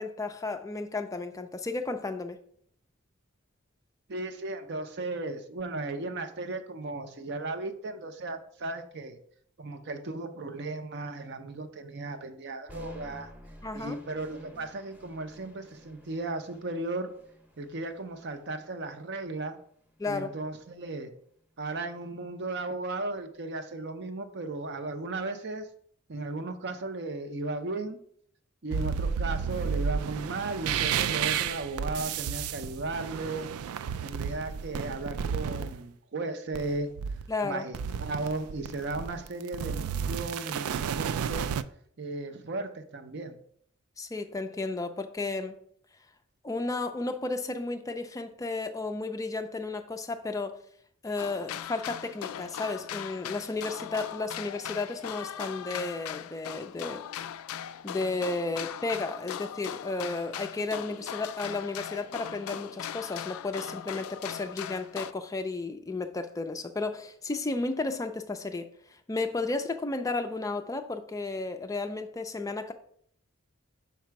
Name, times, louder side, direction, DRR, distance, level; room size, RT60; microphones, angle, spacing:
voice 1, 0.0-2.4 13.6-14.0 20.0-20.3 37.3-37.7 44.0-45.5 46.4-50.6 51.0-57.0 57.8-72.7, left 3 dB, 15° left, 7 dB, 0.3 m, -33 dB
voice 2, 4.1-9.2 9.6-13.3 13.7-17.1 17.6-19.6 20.1-21.1 21.6-25.7 26.1-28.0 28.6-33.5 34.0-36.9 37.4-41.5 42.0-43.3, right 2 dB, 55° right, 8 dB, 0.7 m, -35 dB
sound 1, 12.7-20.7, equal, 5° right, 0.8 m, -52 dB
sound 2, 28.7-35.8 36.5-37.4 37.7-41.6, right 7 dB, 90° right, 0.3 m, -32 dB
sound 3, 51.2-65.1, left 10 dB, 90° left, 0.3 m, -39 dB
5.8 x 4.2 x 4.7 m, 0.64 s
head